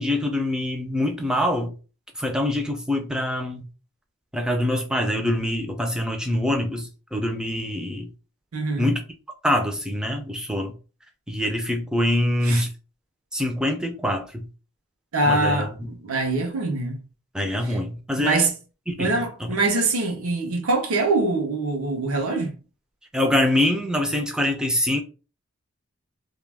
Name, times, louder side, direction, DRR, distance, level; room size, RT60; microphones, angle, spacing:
voice 1, 0.0-1.7 2.2-3.6 4.3-8.1 8.8-9.0 9.4-10.7 11.3-12.7 13.3-14.4 15.2-15.7 17.3-18.5 18.9-19.1 19.4-19.5 23.1-25.0, left 1 dB, 5° right, 0.4 m, -24 dB
voice 2, 8.5-8.9 12.4-12.6 15.1-17.0 17.7-17.8 18.2-18.5 19.0-22.5, right 2 dB, 75° right, 0.7 m, -24 dB
2.3 x 2.2 x 3.3 m
head